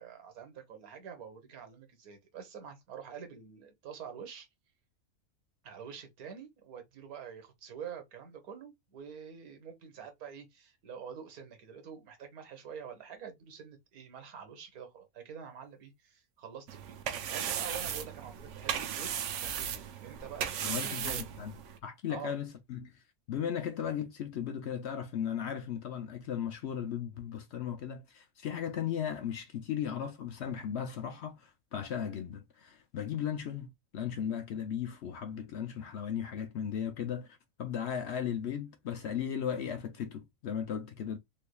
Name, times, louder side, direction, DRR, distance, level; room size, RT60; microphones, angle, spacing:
voice 1, 0.0-4.5 5.6-21.3 22.1-22.3, right 7 dB, 90° right, 1.4 m, -46 dB
sound 1, 16.7-21.8, right 8 dB, 65° right, 0.8 m, -36 dB
voice 2, 20.6-21.5 21.8-23.0 23.3-41.2, left 8 dB, 60° left, 0.7 m, -36 dB
3.6 x 3.3 x 2.2 m
omnidirectional pair, 1.5 m